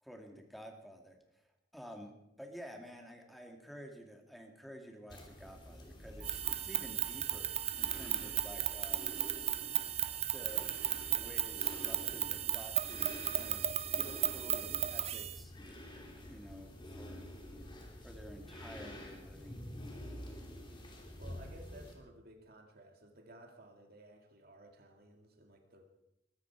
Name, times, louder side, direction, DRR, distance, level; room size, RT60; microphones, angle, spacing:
voice 1, 0.0-1.4 1.7-2.1 2.4-9.1 10.3-10.7 11.1-15.5 16.3-17.2 18.0-19.6, equal, ahead, 2 dB, 2.3 m, -51 dB
sound 1, 5.1-21.9, left 1 dB, 25° left, 3.2 m, -49 dB
sound 2, 6.2-15.4, right 11 dB, 35° right, 0.6 m, -35 dB
voice 2, 8.0-8.5 19.9-20.3 21.2-25.8, right 1 dB, 60° right, 3 dB, 2.2 m, -56 dB
22.0 x 13.0 x 4.8 m, 0.84 s
head